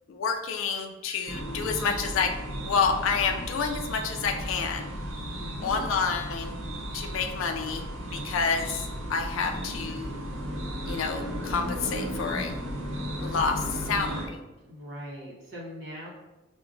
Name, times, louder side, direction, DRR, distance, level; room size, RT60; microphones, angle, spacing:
voice 1, 0.1-2.4 2.7-4.9 5.6-6.6 6.9-7.8 8.1-8.8 9.1-10.1 10.9-12.5 13.2-14.4, left 5 dB, 85° left, 5 dB, 0.4 m, -29 dB
sound 1, 1.3-14.3, equal, 85° right, 0.8 m, -35 dB
voice 2, 5.3-6.2 8.1-8.6 14.6-16.1, equal, 55° right, -7 dB, 0.7 m, -42 dB
5.8 x 2.1 x 2.5 m, 1.1 s
head